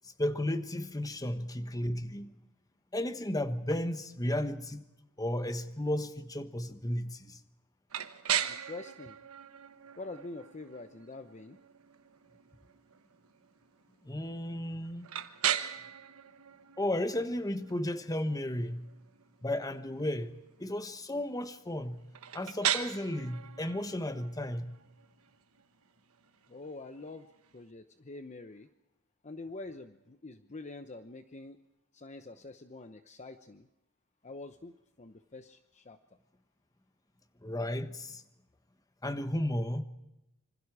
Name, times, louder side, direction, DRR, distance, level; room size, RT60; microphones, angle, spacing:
voice 1, 0.0-2.3 2.9-4.8 5.2-7.4 14.0-15.1 16.8-18.9 19.4-20.3 20.6-22.0 22.3-24.7 37.4-38.2 39.0-39.8, left 1 dB, 15° left, 1.3 m, -34 dB
sound 1, 7.9-27.7, right 10 dB, 80° right, 1.3 m, -39 dB
voice 2, 8.5-9.2 10.0-11.6 26.5-27.3 27.5-28.7 29.2-31.6 31.9-33.7 34.2-34.7 35.0-36.0, left 2 dB, 35° left, 0.9 m, -45 dB
27.0 x 25.5 x 4.9 m
head